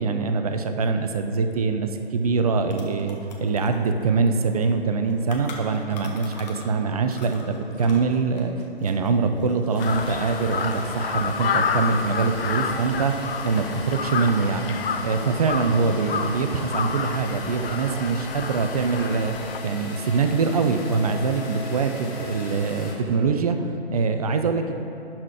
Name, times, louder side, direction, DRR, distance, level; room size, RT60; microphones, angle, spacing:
voice 1, 0.0-8.5 8.8-14.7 15.0-19.4 19.6-24.7, right 4 dB, 35° right, 7 dB, 0.5 m, -24 dB
sound 1, 2.0-2.1 2.4-6.8 7.1-11.1 11.3-12.5 12.9-13.5, left 3 dB, 40° left, 1.2 m, -44 dB
sound 2, 9.7-22.9, left 3 dB, 15° left, 0.8 m, -39 dB
Crow, 9.8-19.6, left 6 dB, 65° left, 0.5 m, -29 dB
11.5 x 4.4 x 4.8 m, 2.9 s
figure-of-eight pair, 125°, 32 cm